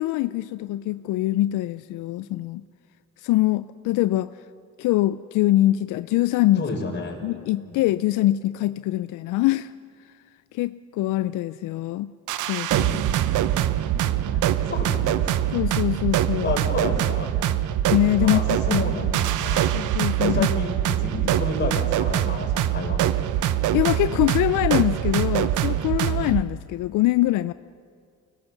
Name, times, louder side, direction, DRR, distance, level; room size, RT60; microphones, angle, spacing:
voice 1, 0.0-2.6 3.2-4.3 4.8-6.6 7.2-9.7 10.5-12.1 12.5-13.0 15.5-16.5 17.9-18.4 18.7-18.8 19.7-20.5 23.7-27.5, left 15 dB, 90° left, 14 dB, 0.5 m, -23 dB
voice 2, 6.6-7.2 7.6-7.8 14.3-15.3 16.1-17.4 18.2-19.7 20.2-23.4, left 3 dB, 40° left, 1 dB, 5.1 m, -31 dB
sound 1, 12.3-26.4, right 12 dB, 80° right, 0.8 m, -24 dB
23.5 x 17.0 x 7.1 m, 2.2 s
cardioid pair, 90°, 30 cm